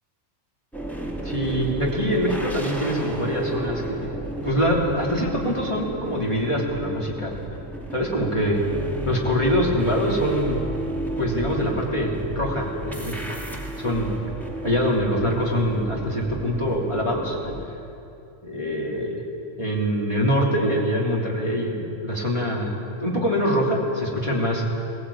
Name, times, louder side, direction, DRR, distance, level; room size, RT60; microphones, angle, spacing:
sound 1, 0.7-17.7, right 1 dB, ahead, 2.3 m, -33 dB
voice 1, 1.2-4.1 4.4-7.3 7.9-8.6 9.0-10.6 11.2-13.4 13.8-14.1 14.6-17.5 18.4-19.2 19.6-22.7 23.0-24.6, equal, 20° left, -2 dB, 3.3 m, -24 dB
19.0 x 18.0 x 8.6 m, 2.7 s
omnidirectional pair, 1.4 m